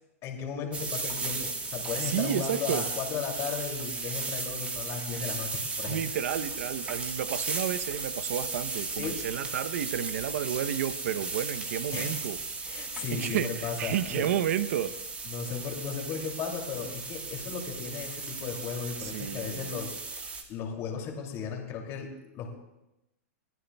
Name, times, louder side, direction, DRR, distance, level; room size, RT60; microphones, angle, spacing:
voice 1, 0.2-6.0 9.0-9.2 11.9-12.2 12.6-14.3 15.2-19.9 20.5-22.6, left 6 dB, 35° left, 1 dB, 2.6 m, -35 dB
sound 1, 0.7-20.4, right 3 dB, 15° right, 1.5 m, -36 dB
voice 2, 2.0-2.8 5.9-12.4 13.1-14.9 19.0-19.7, right 10 dB, 70° right, 13 dB, 0.8 m, -31 dB
21.5 x 14.0 x 2.3 m, 0.90 s
hypercardioid pair, 135°, 8 cm